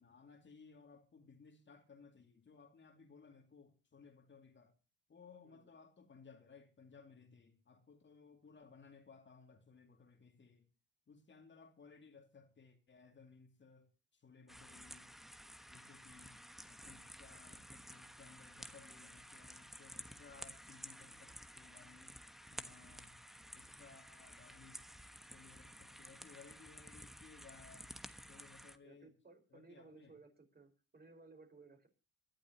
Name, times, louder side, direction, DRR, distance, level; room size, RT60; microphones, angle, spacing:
voice 1, 0.0-4.7 5.1-10.7 11.1-15.1 15.7-22.2 22.5-23.2 23.5-24.8 25.2-27.9 28.3-29.1 29.5-30.1, left 5 dB, 40° left, 2.4 m, -61 dB
sound 1, 14.5-28.8, equal, ahead, 1.2 m, -53 dB
voice 2, 28.8-31.9, right 3 dB, 30° right, 4.9 m, -60 dB
26.0 x 11.5 x 2.8 m
cardioid pair, 90°, 30 cm